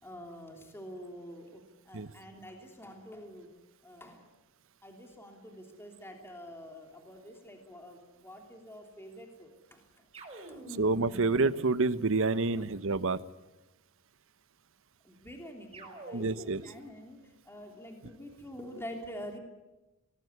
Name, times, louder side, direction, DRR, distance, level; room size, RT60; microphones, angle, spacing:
voice 1, 0.0-3.5 3.8-4.3 4.8-10.1 10.5-10.9 12.3-12.6 15.0-19.4, equal, 10° left, 2 dB, 3.1 m, -47 dB
sound 1, 10.1-12.6 15.7-16.8, right 1 dB, 30° right, 5.4 m, -47 dB
voice 2, 10.8-13.2 16.1-16.6, right 3 dB, 65° right, 14 dB, 1.0 m, -28 dB
23.5 x 19.5 x 9.7 m, 1.0 s
head